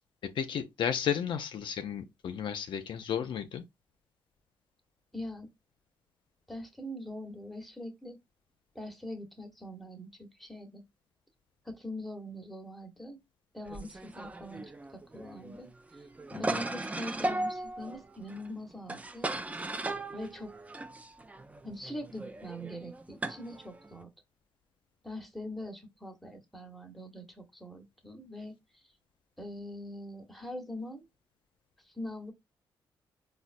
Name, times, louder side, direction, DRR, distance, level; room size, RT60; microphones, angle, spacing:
voice 1, 0.2-3.6 16.3-16.4, left 8 dB, 70° left, 0.4 m, -33 dB
voice 2, 5.1-5.5 6.5-8.2 8.7-10.8 11.6-13.2 13.5-16.1 16.4-19.3 20.1-20.5 21.6-24.1 25.0-28.8 29.4-31.1 31.8-32.3, left 1 dB, ahead, 1.0 m, -43 dB
sound 1, 13.7-24.0, right 2 dB, 15° right, 0.4 m, -37 dB
4.0 x 2.1 x 2.5 m
cardioid pair, 70°, 9 cm